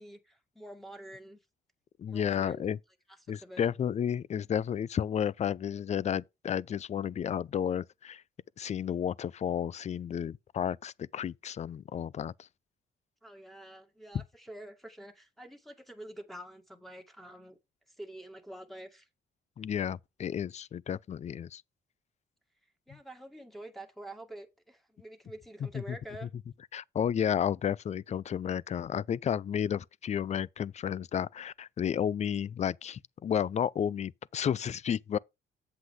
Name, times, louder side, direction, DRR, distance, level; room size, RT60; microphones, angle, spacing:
voice 1, 0.0-1.4 2.1-2.7 3.4-3.7 13.2-17.6 17.9-19.1 22.9-26.3, right 1 dB, ahead, 1.9 m, -47 dB
voice 2, 2.0-2.8 3.3-8.2 8.6-12.5 14.1-14.2 19.6-21.6 25.7-26.0 26.7-35.2, left 8 dB, 35° left, 0.4 m, -32 dB
7.9 x 7.8 x 3.6 m
cardioid pair, 90°, 20 cm